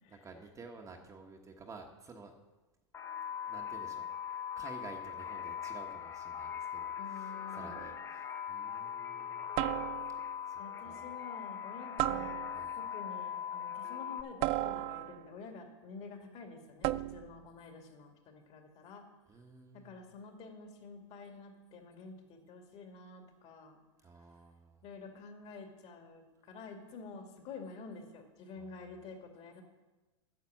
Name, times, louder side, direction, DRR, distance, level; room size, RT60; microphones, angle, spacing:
voice 1, 0.1-2.3 3.5-9.6 10.4-11.1 12.5-12.7 19.3-20.1 24.0-24.8 28.6-28.9, right 4 dB, 20° right, 2 dB, 1.2 m, -52 dB
sound 1, 2.9-14.2, left 8 dB, 15° left, 0.7 m, -41 dB
voice 2, 7.0-7.8 10.6-12.4 12.7-19.0 19.7-23.8 24.8-29.6, left 4 dB, 40° left, 4 dB, 2.3 m, -49 dB
sound 2, 7.8-8.1 9.6-10.3 12.0-12.8 14.4-15.3 16.8-17.4, right 16 dB, 35° right, 0.4 m, -35 dB
9.3 x 6.6 x 8.6 m, 1.1 s
hypercardioid pair, 120°, 16 cm